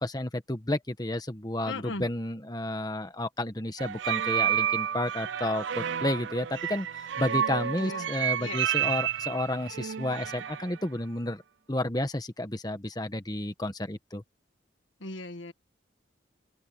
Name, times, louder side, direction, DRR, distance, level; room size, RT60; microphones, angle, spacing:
voice 1, 0.0-11.4 11.7-14.2, left 1 dB, 20° left, 1.3 m, -31 dB
voice 2, 1.6-2.1 7.8-8.1 8.4-8.6 15.0-15.5, left 2 dB, 75° left, 1.4 m, -37 dB
sound 1, 3.8-10.7, right 10 dB, 70° right, 0.5 m, -30 dB
open air
head